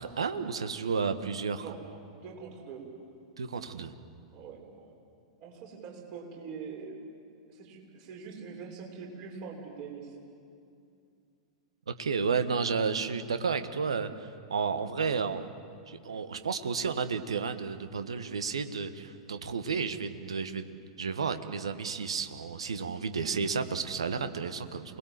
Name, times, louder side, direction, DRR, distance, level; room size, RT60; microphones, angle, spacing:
voice 1, 0.0-1.6 3.4-3.9 12.0-15.5 15.9-20.7 21.0-25.0, right 5 dB, 70° right, 10 dB, 1.5 m, -32 dB
voice 2, 1.6-1.9 2.2-2.8 4.3-4.9 5.4-7.0 7.5-10.1, right 5 dB, 40° right, 0 dB, 6.8 m, -43 dB
29.0 x 21.5 x 7.7 m, 2.5 s
figure-of-eight pair, 95°, 3 cm